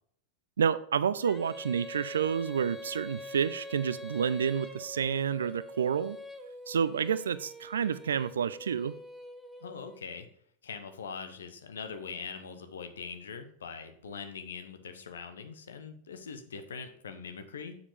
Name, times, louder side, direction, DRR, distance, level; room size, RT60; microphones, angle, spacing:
voice 1, 0.6-6.2 6.7-8.9, right 7 dB, 65° right, 15 dB, 0.3 m, -29 dB
Female singing, 1.2-10.0, equal, ahead, 0.9 m, -44 dB
voice 2, 9.6-10.3 10.6-17.8, left 5 dB, 65° left, 8 dB, 0.9 m, -42 dB
7.2 x 6.8 x 3.3 m, 0.65 s
figure-of-eight pair, 90°, 0 cm